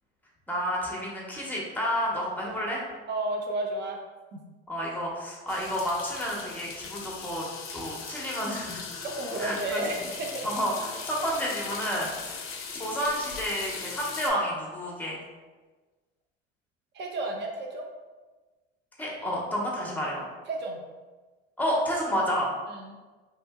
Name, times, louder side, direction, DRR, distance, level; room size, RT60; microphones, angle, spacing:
voice 1, 0.5-2.8 4.7-8.8 9.4-9.8 10.4-12.5 12.8-15.2 19.0-20.2 21.6-22.5, equal, 5° left, -3 dB, 0.8 m, -30 dB
voice 2, 3.1-4.0 4.3-4.4 9.0-10.5 16.9-17.9 19.8-19.9 20.5-20.8 22.7-22.9, right 2 dB, 35° right, 1 dB, 0.6 m, -32 dB
sound 1, 5.5-14.3, left 5 dB, 45° left, 0.5 m, -39 dB
2.8 x 2.5 x 2.3 m, 1.3 s
hypercardioid pair, 75°, 31 cm